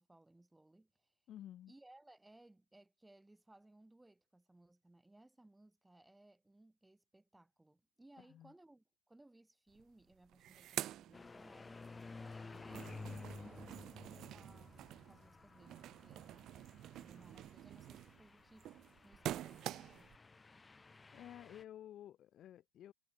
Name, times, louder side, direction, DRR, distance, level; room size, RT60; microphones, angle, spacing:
voice 1, 0.0-1.1 1.7-16.6 16.9-20.1, right 2 dB, 5° right, 6.5 m, -64 dB
voice 2, 1.3-1.7 8.2-8.5 21.1-22.9, left 11 dB, 30° left, 1.0 m, -53 dB
sound 1, 9.7-9.8 10.1-11.9 12.3-20.2, right 13 dB, 35° right, 0.8 m, -47 dB
sound 2, 11.1-21.6, left 3 dB, 10° left, 0.4 m, -54 dB
hypercardioid pair, 110°, 0 cm